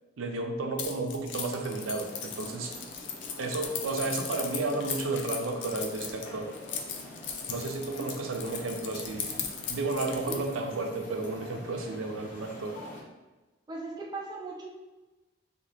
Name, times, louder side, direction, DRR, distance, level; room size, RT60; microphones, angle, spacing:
voice 1, 0.2-2.7 3.4-6.5 7.5-9.4 9.7-12.8, right 3 dB, 90° right, 4 dB, 0.5 m, -32 dB
Keys jangling, 0.8-10.5, left 7 dB, 65° left, 0.4 m, -38 dB
sound 1, 1.7-13.0, left 1 dB, 40° left, 0.8 m, -46 dB
voice 2, 13.7-14.7, right 3 dB, 20° right, -2 dB, 0.4 m, -38 dB
2.7 x 2.7 x 3.4 m, 1.1 s
head